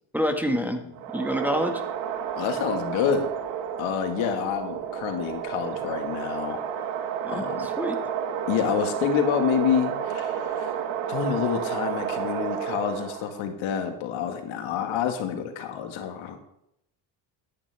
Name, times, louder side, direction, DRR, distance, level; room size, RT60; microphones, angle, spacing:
voice 1, 0.1-0.8 1.1-1.8 7.2-8.0, equal, 5° right, 4 dB, 1.8 m, -27 dB
sound 1, 0.9-13.4, right 8 dB, 85° right, 1.4 m, -31 dB
voice 2, 2.4-3.3 3.8-6.6 7.3-7.6 8.5-10.8 11.1-16.4, left 8 dB, 70° left, 5 dB, 1.9 m, -28 dB
13.5 x 9.9 x 3.5 m, 0.78 s
supercardioid pair, 95°, 49 cm